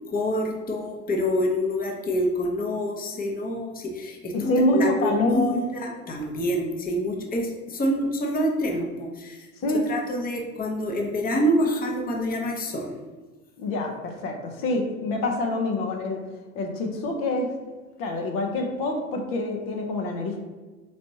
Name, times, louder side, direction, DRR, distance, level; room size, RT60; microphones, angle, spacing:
voice 1, 0.1-12.9, equal, 20° left, 1 dB, 0.8 m, -27 dB
voice 2, 4.3-5.6 9.6-9.9 13.6-16.2 16.5-17.5 18.0-20.4, left 1 dB, 60° left, 2 dB, 0.8 m, -26 dB
4.1 x 3.1 x 2.7 m, 1.3 s
hypercardioid pair, 65°, 39 cm